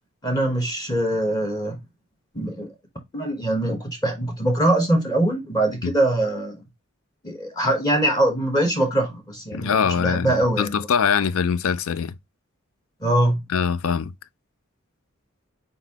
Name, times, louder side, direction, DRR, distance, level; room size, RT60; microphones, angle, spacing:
voice 1, 0.2-1.8 2.3-2.7 3.1-6.6 7.2-10.9 13.0-13.4, right 1 dB, 20° left, 1.0 m, -23 dB
voice 2, 9.5-12.1 13.5-14.1, left 6 dB, 80° left, 0.4 m, -23 dB
4.3 x 4.1 x 2.7 m
head